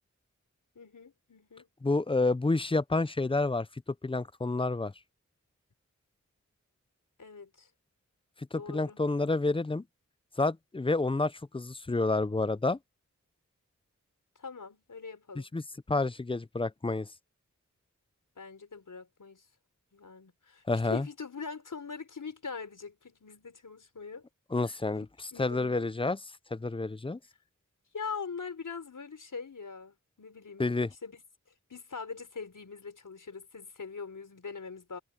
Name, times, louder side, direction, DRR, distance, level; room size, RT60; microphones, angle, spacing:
voice 1, 0.7-1.7 7.2-7.7 8.5-9.0 14.4-15.5 18.4-19.4 19.9-20.6 20.9-24.2 24.6-24.8 25.3-25.9 27.9-30.8 31.0-31.2 31.7-35.0, left 5 dB, 85° left, 4.7 m, -42 dB
voice 2, 1.8-3.7 4.0-4.9 8.5-9.8 10.4-12.8 15.4-15.6 15.9-17.1 20.7-21.1 24.5-25.0 25.4-26.2 26.5-27.2 30.6-30.9, left 3 dB, 15° left, 0.5 m, -29 dB
wide cardioid pair, 50°, 30 cm